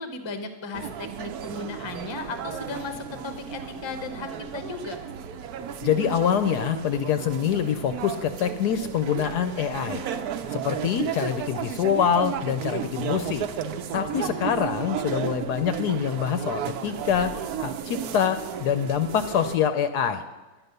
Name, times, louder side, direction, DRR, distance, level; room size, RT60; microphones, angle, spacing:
voice 1, 0.0-5.0, left 3 dB, 25° left, 7 dB, 0.6 m, -35 dB
sound 1, 0.7-19.6, right 8 dB, 65° right, 1.0 m, -34 dB
voice 2, 5.8-10.1 10.5-13.5 13.9-17.3 17.6-20.2, left 8 dB, 70° left, 9 dB, 1.0 m, -25 dB
10.5 x 9.1 x 6.6 m, 1.2 s
omnidirectional pair, 2.0 m